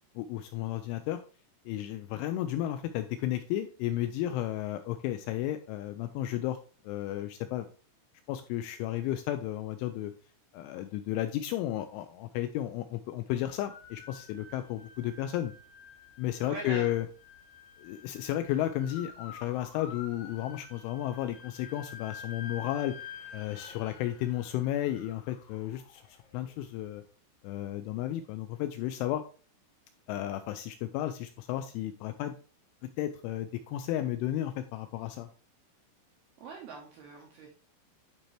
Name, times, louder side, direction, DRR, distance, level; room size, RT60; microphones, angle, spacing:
voice 1, 0.2-1.2 1.7-6.6 6.8-7.7 8.3-10.1 10.5-15.5 16.2-17.1 17.8-23.0 23.3-26.0 26.3-27.0 27.4-29.2 30.1-32.3 33.0-35.3, left 13 dB, 85° left, 8 dB, 2.8 m, -33 dB
sound 1, 13.6-26.7, left 6 dB, 70° left, 2.8 m, -49 dB
voice 2, 16.4-16.9 36.4-37.5, right 3 dB, 75° right, -1 dB, 2.2 m, -42 dB
11.0 x 4.4 x 3.2 m, 0.38 s
omnidirectional pair, 5.9 m